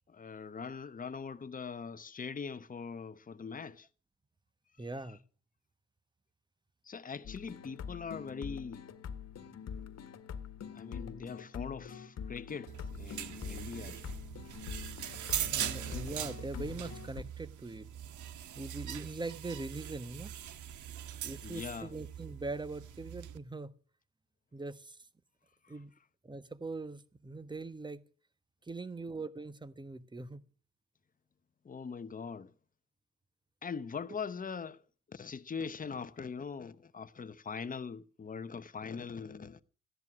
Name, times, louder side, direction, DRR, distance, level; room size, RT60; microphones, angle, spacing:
voice 1, 0.1-3.9 6.8-8.9 9.8-9.9 10.7-14.1 21.4-21.9 31.6-32.5 33.6-34.8 35.1-39.6, left 5 dB, 30° left, 1.0 m, -42 dB
voice 2, 4.8-5.2 15.3-17.9 18.5-20.3 21.2-23.7 24.5-25.0 25.7-25.9 26.2-28.0 28.6-30.4, right 3 dB, 15° right, 1.2 m, -42 dB
sound 1, 7.2-17.2, left 7 dB, 60° left, 1.6 m, -44 dB
sound 2, 12.7-23.4, right 10 dB, 75° right, 1.4 m, -41 dB
15.5 x 10.5 x 6.2 m
cardioid pair, 90°, 30 cm